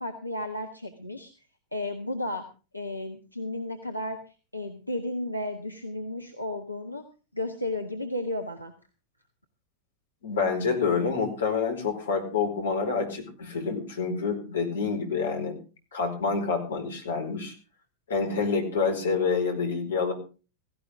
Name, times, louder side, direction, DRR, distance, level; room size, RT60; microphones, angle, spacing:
voice 1, 0.0-1.5 1.7-2.5 2.7-4.2 4.5-7.0 7.3-8.7, left 1 dB, 90° left, 4 dB, 1.4 m, -33 dB
voice 2, 10.2-15.6 15.9-17.5 18.1-20.1, left 5 dB, 65° left, 3 dB, 4.8 m, -27 dB
16.5 x 16.0 x 3.7 m, 0.34 s
figure-of-eight pair, 90°, 0 cm